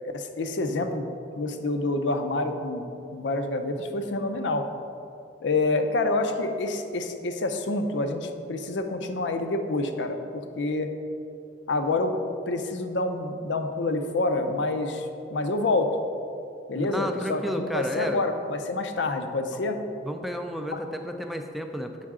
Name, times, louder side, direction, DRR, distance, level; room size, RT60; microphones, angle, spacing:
voice 1, 0.1-1.1 1.4-2.9 3.1-4.7 5.4-10.9 11.7-12.1 12.5-15.9 16.7-19.8, left 2 dB, 85° left, 7 dB, 0.5 m, -27 dB
voice 2, 16.7-18.2 19.5-19.7 20.0-22.0, equal, ahead, 4 dB, 0.3 m, -32 dB
7.4 x 5.6 x 3.6 m, 2.7 s
head